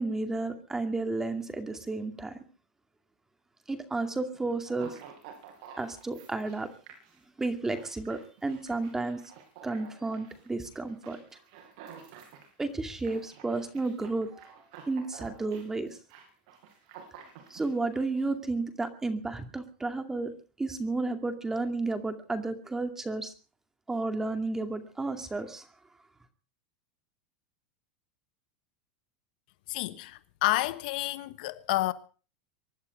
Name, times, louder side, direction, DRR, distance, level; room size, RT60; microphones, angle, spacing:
voice 1, 0.0-2.4 3.7-5.0 5.8-6.7 7.4-9.2 9.6-11.2 12.6-14.5 14.9-15.9 17.5-20.3 20.6-23.3 23.9-25.6, right 3 dB, 10° right, 2.3 m, -32 dB
sound 1, 4.8-18.2, right 7 dB, 60° right, 6.9 m, -51 dB
voice 2, 29.7-31.9, left 18 dB, 65° left, 1.3 m, -29 dB
24.5 x 11.0 x 5.2 m
supercardioid pair, 150°, 5 cm